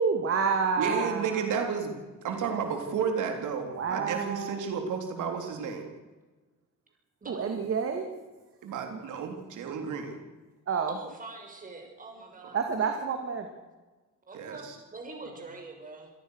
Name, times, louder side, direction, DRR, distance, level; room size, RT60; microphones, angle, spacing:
voice 1, 0.0-1.5 3.7-4.6 7.3-8.1 8.9-9.0 10.7-10.9 12.5-13.5, right 5 dB, 45° right, 4 dB, 2.6 m, -29 dB
voice 2, 0.8-2.0 2.2-5.9 8.6-10.2 14.3-14.8, right 6 dB, 80° right, 4 dB, 3.7 m, -32 dB
voice 3, 7.2-7.7 10.9-12.6 14.3-16.1, right 3 dB, 25° right, 3 dB, 6.3 m, -44 dB
27.0 x 17.5 x 6.6 m, 1.2 s
cardioid pair, 150°, 30 cm